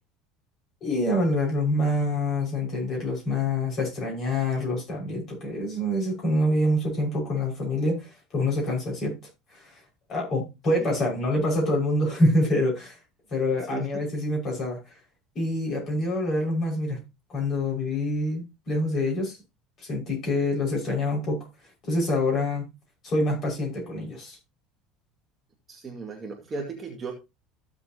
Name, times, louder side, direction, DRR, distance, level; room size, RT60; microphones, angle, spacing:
voice 1, 0.8-9.1 9.5-9.7 10.1-13.0 13.3-14.8 15.4-17.0 17.3-19.4 19.8-21.5 21.8-22.7 23.0-24.4, left 1 dB, 35° left, -1 dB, 5.6 m, -26 dB
voice 2, 13.7-14.0 25.7-27.1, right 4 dB, 20° right, 0 dB, 2.1 m, -36 dB
14.5 x 7.3 x 2.9 m, 0.25 s
cardioid pair, 170°, 0 cm